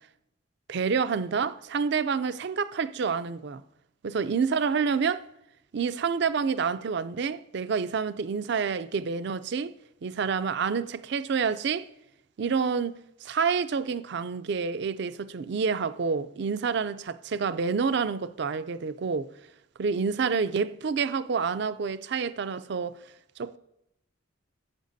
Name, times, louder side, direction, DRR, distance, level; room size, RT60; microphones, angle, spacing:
voice 1, 0.7-3.6 4.0-5.2 5.7-9.7 10.0-11.9 12.4-19.3 19.8-23.0 23.4-23.6, right 5 dB, 55° right, 0.4 m, -28 dB
11.5 x 8.0 x 2.7 m
head